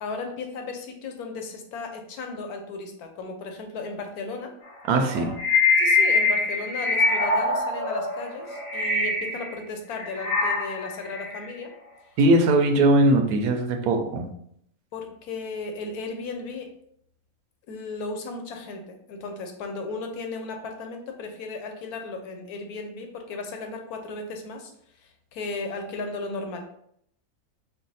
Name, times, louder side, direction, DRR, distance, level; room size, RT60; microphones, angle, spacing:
voice 1, 0.0-4.5 5.8-11.7 14.9-16.7 17.7-24.7 25.0-26.6, left 3 dB, 90° left, 4 dB, 1.2 m, -35 dB
voice 2, 4.9-5.4 12.2-14.3, right 2 dB, 85° right, 6 dB, 1.1 m, -20 dB
sound 1, 5.0-9.5 9.9-11.5, left 3 dB, 25° left, 0.8 m, -24 dB
4.7 x 2.0 x 4.0 m, 0.70 s
omnidirectional pair, 1.5 m